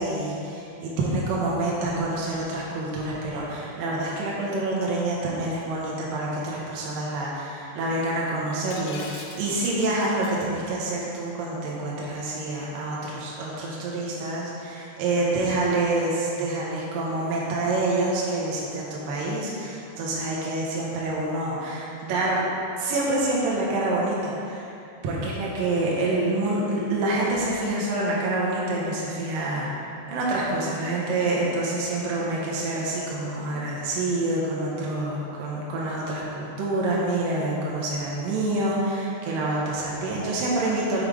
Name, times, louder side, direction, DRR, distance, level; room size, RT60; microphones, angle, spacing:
voice 1, 0.0-22.4 22.8-24.7 25.0-29.7 30.1-41.0, right 2 dB, 70° right, -5 dB, 2.2 m, -27 dB
Shatter, 8.7-10.4, left 3 dB, 75° left, 2.6 m, -42 dB
6.7 x 5.6 x 4.8 m, 2.6 s
omnidirectional pair, 5.2 m